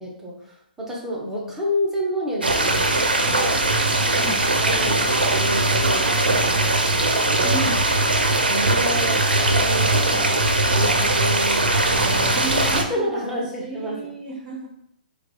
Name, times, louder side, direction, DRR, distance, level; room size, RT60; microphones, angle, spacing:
voice 1, 0.0-3.6 4.0-4.3 4.6-7.6 8.5-9.2 9.5-11.6 12.2-12.4 12.7-14.0, equal, 5° right, -4 dB, 0.8 m, -30 dB
sound 1, 2.4-12.8, right 2 dB, 90° right, 0.5 m, -20 dB
voice 2, 7.4-7.9 12.0-14.7, right 1 dB, 25° right, -8 dB, 1.3 m, -33 dB
4.5 x 2.3 x 2.2 m, 0.71 s
figure-of-eight pair, 125°, 5 cm